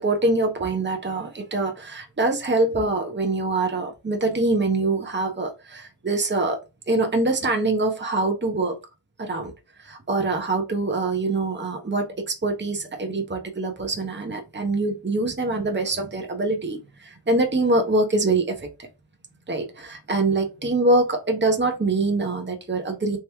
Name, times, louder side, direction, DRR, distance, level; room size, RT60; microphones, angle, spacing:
voice 1, 0.0-6.6 6.9-8.8 9.2-9.5 9.8-18.7 19.5-23.2, right 2 dB, 25° right, 1.0 m, -24 dB
3.5 x 3.0 x 3.0 m
wide cardioid pair, 60°, 42 cm